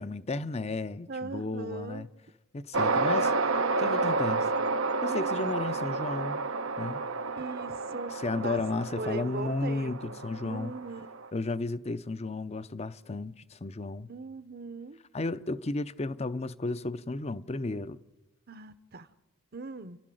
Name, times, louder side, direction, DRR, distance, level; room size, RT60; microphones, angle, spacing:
voice 1, 0.0-2.1 2.5-3.4 3.8-4.4 5.0-6.4 6.8-7.0 8.2-10.7 11.3-14.1 15.1-18.0, left 2 dB, 30° left, 0.6 m, -33 dB
voice 2, 1.1-2.1 3.1-4.2 5.0-5.6 7.4-8.6 8.9-11.0 14.1-15.0 18.5-19.1 19.5-20.0, right 3 dB, 50° right, 0.9 m, -40 dB
sound 1, 2.7-11.3, right 3 dB, 85° right, 0.9 m, -30 dB
30.0 x 12.0 x 7.8 m
head